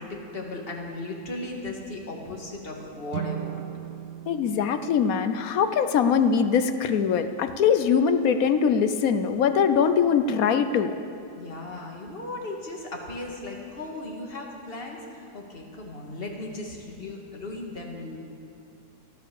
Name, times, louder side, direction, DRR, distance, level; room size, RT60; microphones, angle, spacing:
voice 1, 0.0-3.6 11.4-18.2, left 2 dB, 35° left, 0 dB, 2.0 m, -36 dB
sound 1, 3.1-6.4, right 11 dB, 70° right, 0.9 m, -38 dB
voice 2, 4.3-11.0, left 7 dB, 65° left, 10 dB, 1.0 m, -22 dB
13.5 x 13.5 x 6.9 m, 2.6 s
omnidirectional pair, 1.9 m